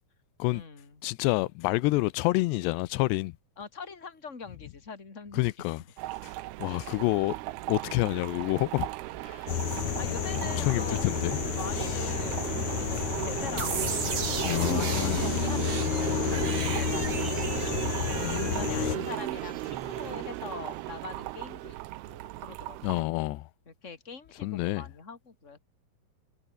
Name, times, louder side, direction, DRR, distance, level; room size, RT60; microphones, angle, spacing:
voice 1, 0.5-1.0 3.6-5.4 10.0-11.1 11.6-14.2 14.7-21.8 22.1-23.1 23.7-25.6, left 5 dB, 20° left, 3.2 m, -43 dB
voice 2, 1.0-3.3 5.4-5.8 6.6-7.3 7.7-8.9 9.2-9.5 10.6-11.4 14.4-15.3 18.2-19.1 22.8-23.4 24.4-24.8, left 20 dB, 85° left, 2.8 m, -28 dB
sound 1, 6.0-23.0, right 17 dB, 80° right, 2.7 m, -36 dB
sound 2, 9.5-19.0, left 10 dB, 55° left, 2.5 m, -31 dB
sound 3, 13.6-20.4, right 7 dB, 40° right, 2.8 m, -36 dB
omnidirectional pair, 4.9 m